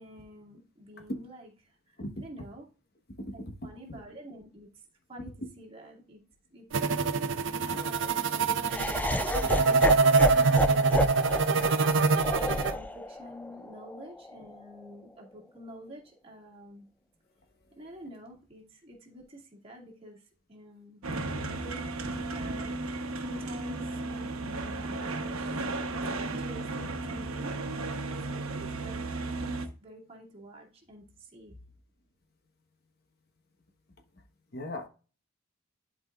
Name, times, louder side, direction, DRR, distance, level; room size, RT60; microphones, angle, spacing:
voice 1, 0.0-1.8 2.2-2.7 3.3-4.7 5.1-5.3 5.6-6.2 6.5-6.7 7.0-11.1 12.3-16.8 17.8-20.2 20.5-25.6 26.2-27.5 28.1-31.6, equal, 30° right, -2 dB, 2.2 m, -48 dB
voice 2, 3.2-3.5 3.9-4.0 7.6-8.0 34.5-34.9, left 1 dB, 50° left, 5 dB, 1.1 m, -39 dB
sound 1, 6.7-12.7, right 4 dB, 60° right, 0.6 m, -24 dB
Laughter, 8.7-14.8, left 1 dB, 10° left, 0.3 m, -32 dB
sound 2, 21.0-29.7, right 2 dB, 85° right, 1.0 m, -34 dB
11.5 x 5.0 x 2.4 m, 0.35 s
head